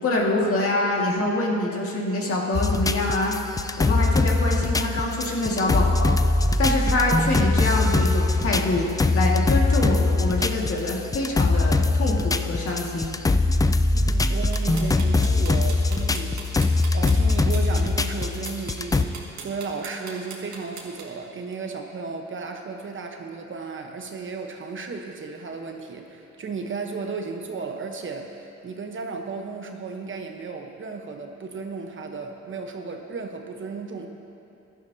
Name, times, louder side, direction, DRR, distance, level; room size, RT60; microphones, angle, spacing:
voice 1, 0.0-3.4 3.8-6.2 6.6-13.1, left 2 dB, 50° left, -2 dB, 1.9 m, -25 dB
sound 1, 2.5-19.0, left 3 dB, 10° left, 0.3 m, -22 dB
voice 2, 13.9-16.4 16.9-19.1 19.4-34.1, right 4 dB, 40° right, 3 dB, 1.0 m, -34 dB
sound 2, 14.5-21.0, right 5 dB, 65° right, 1.9 m, -38 dB
15.5 x 11.5 x 2.8 m, 2.7 s
cardioid pair, 90°, 30 cm